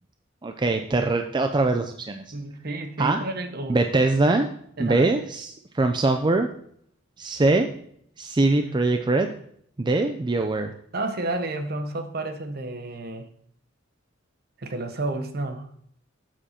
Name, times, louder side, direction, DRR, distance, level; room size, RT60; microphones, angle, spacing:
voice 1, 0.4-2.2 3.0-3.2 3.7-4.5 4.8-6.5 7.2-7.7 8.2-9.3 9.8-10.7, right 2 dB, 25° right, 5 dB, 0.4 m, -22 dB
voice 2, 2.3-3.8 4.8-5.2 10.9-13.3 14.6-15.7, right 2 dB, 50° right, 7 dB, 1.0 m, -31 dB
7.5 x 6.5 x 4.3 m, 0.65 s
head